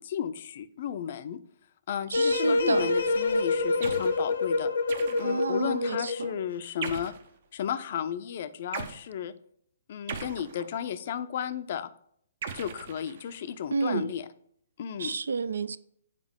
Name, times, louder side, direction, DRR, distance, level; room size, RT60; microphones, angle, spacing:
voice 1, 0.0-1.4 1.9-4.7 5.2-7.1 7.5-9.3 9.9-11.9 12.5-14.3 14.8-15.1, left 9 dB, 50° left, 0.4 m, -34 dB
sound 1, 2.1-6.4, left 3 dB, 75° left, 0.8 m, -27 dB
voice 2, 2.1-2.9 5.2-6.4 13.7-14.1 15.0-15.8, right 4 dB, 80° right, 0.3 m, -30 dB
sound 2, 3.8-4.2 4.9-5.5 6.8-7.3 8.7-9.0 10.1-11.0 12.4-13.5, right 6 dB, 55° right, 0.7 m, -39 dB
7.4 x 4.3 x 3.6 m
hypercardioid pair, 140°, 0 cm